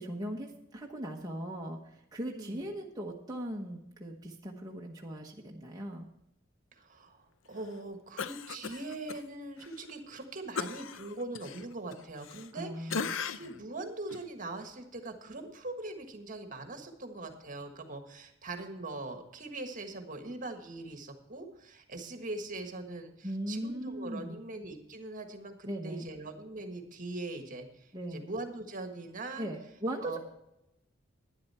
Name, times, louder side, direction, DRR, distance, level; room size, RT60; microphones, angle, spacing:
voice 1, 0.0-6.0 12.5-13.2 23.2-24.4 25.7-26.1 27.9-28.3 29.4-30.2, right 1 dB, 20° right, -1 dB, 1.1 m, -39 dB
voice 2, 6.7-29.5 30.0-30.2, right 2 dB, 45° right, 6 dB, 1.5 m, -42 dB
Cough, 8.2-9.2 9.6-9.7 10.6-12.6 12.9-13.6 14.1-14.2, left 5 dB, 75° left, 0.6 m, -37 dB
11.5 x 10.0 x 4.3 m, 0.85 s
head